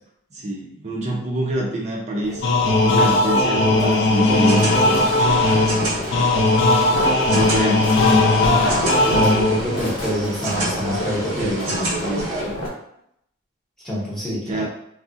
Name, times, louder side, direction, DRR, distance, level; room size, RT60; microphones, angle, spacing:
voice 1, 0.3-2.4 2.8-5.1 7.3-7.8 11.4-12.6 14.5-14.7, right 1 dB, 35° right, -2 dB, 0.5 m, -26 dB
sound 1, 2.2-12.7, equal, 85° left, 0.9 m, -29 dB
sound 2, 2.4-9.8, left 2 dB, 60° left, 0.4 m, -18 dB
sound 3, 4.1-12.4, right 2 dB, 80° right, 0.7 m, -30 dB
voice 2, 9.1-12.1 13.8-14.7, equal, ahead, -6 dB, 0.7 m, -26 dB
3.5 x 2.0 x 2.5 m, 0.74 s
head